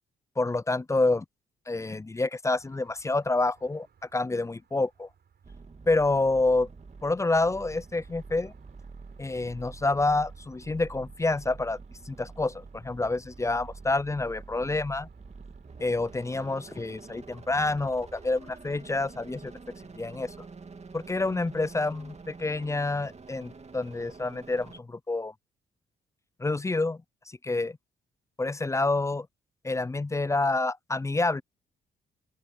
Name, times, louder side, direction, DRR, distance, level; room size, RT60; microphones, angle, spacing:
voice 1, 0.4-1.2 1.7-3.9 4.1-5.1 5.9-6.7 7.0-8.5 9.2-11.8 12.1-15.1 15.8-19.5 19.9-20.3 20.9-25.3 26.4-27.0 27.3-27.8 28.4-29.3 29.6-31.4, left 2 dB, 15° left, 0.4 m, -28 dB
sound 1, 2.5-22.4, right 7 dB, 55° right, 5.3 m, -63 dB
sound 2, 5.4-24.8, right 4 dB, 35° right, 2.7 m, -47 dB
open air
hypercardioid pair, 50°, 20 cm